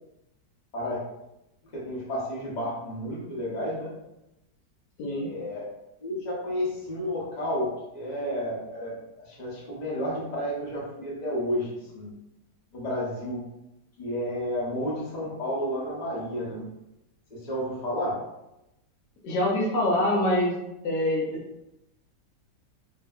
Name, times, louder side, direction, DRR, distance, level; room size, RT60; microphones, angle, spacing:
voice 1, 1.6-3.9 5.1-5.7 6.0-8.9 9.2-12.1 12.7-13.5 14.0-16.7 17.3-18.3, equal, 50° left, -5 dB, 0.5 m, -31 dB
voice 2, 19.2-20.5 20.8-21.4, left 1 dB, 80° left, -2 dB, 1.2 m, -25 dB
2.6 x 2.6 x 2.3 m, 0.90 s
omnidirectional pair, 1.9 m